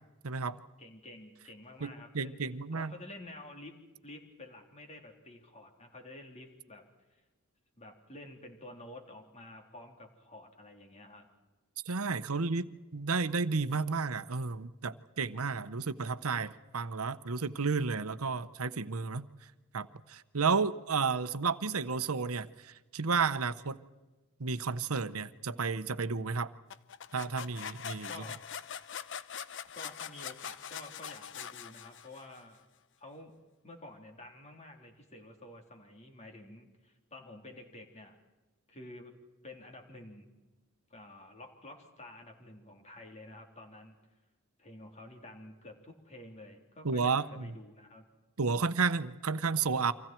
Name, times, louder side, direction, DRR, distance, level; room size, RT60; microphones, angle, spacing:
voice 1, 0.2-0.6 1.8-2.9 11.9-19.3 19.7-23.8 24.4-26.5 27.1-28.1 46.8-47.5 48.4-49.9, right 4 dB, 90° right, 14 dB, 0.9 m, -32 dB
voice 2, 0.8-2.4 2.7-3.7 4.0-6.8 7.1-7.2 7.8-11.3 28.1-28.4 29.7-32.6 33.0-33.3 33.6-38.2 38.7-39.1 39.4-40.3 40.9-44.0 44.6-48.0, left 1 dB, 30° left, 3 dB, 3.7 m, -50 dB
sound 1, 26.7-32.4, left 8 dB, 60° left, 0.8 m, -43 dB
30.0 x 25.0 x 4.5 m, 1.2 s
head